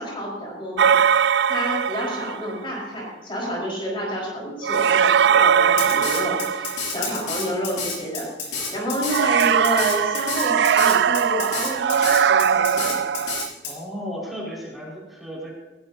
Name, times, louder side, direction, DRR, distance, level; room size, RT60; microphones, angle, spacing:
voice 1, 0.0-13.0, equal, 30° left, -3 dB, 4.8 m, -29 dB
sound 1, 0.8-2.5 4.6-7.2 9.1-13.5, right 7 dB, 70° right, 0.4 m, -20 dB
Drum kit, 5.8-13.7, left 4 dB, 80° left, 5.9 m, -29 dB
voice 2, 13.6-15.5, equal, ahead, -5 dB, 5.1 m, -34 dB
19.0 x 19.0 x 2.8 m, 1.2 s
head